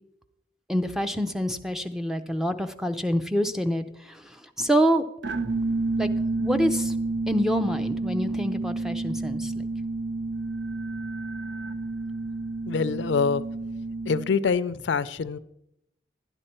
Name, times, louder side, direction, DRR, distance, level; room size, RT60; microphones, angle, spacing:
voice 1, 0.7-4.2 4.6-5.0 6.0-6.1 6.4-6.9 7.3-9.5, equal, 5° right, 8 dB, 0.5 m, -26 dB
sound 1, 5.2-14.5, right 2 dB, 80° right, 0.7 m, -30 dB
voice 2, 12.7-13.4 14.1-15.4, left 5 dB, 85° left, 15 dB, 0.4 m, -25 dB
12.0 x 9.8 x 4.4 m, 0.81 s
head